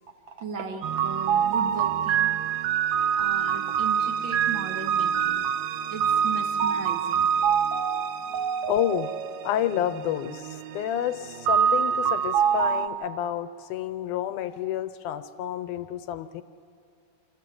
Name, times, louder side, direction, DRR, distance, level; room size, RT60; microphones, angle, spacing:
voice 1, 0.4-2.4 3.2-5.5 5.9-7.3, right 5 dB, 45° right, 4 dB, 1.8 m, -36 dB
sound 1, 0.8-12.9, right 8 dB, 75° right, 1.8 m, -25 dB
voice 2, 8.7-9.1 9.4-16.4, left 11 dB, 85° left, 9 dB, 2.2 m, -29 dB
27.5 x 13.5 x 7.7 m, 2.7 s
omnidirectional pair, 3.6 m